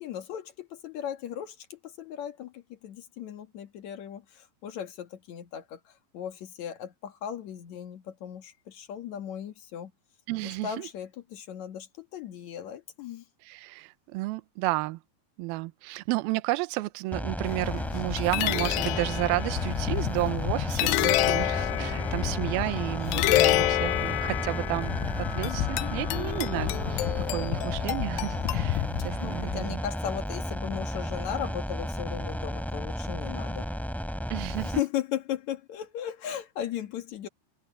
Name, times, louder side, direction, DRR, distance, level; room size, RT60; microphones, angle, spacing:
voice 1, 0.0-9.9 10.4-13.2 27.1-27.2 29.2-33.7 34.6-37.3, left 10 dB, 60° left, 2.1 m, -37 dB
voice 2, 10.3-10.9 13.4-15.0 15.4-24.9 25.2-29.8 34.3-34.8, right 20 dB, 85° right, 2.2 m, -32 dB
sound 1, 17.1-34.8, equal, ahead, 2.5 m, -33 dB
sound 2, 17.5-29.6, left 16 dB, 85° left, 2.6 m, -29 dB
omnidirectional pair, 5.2 m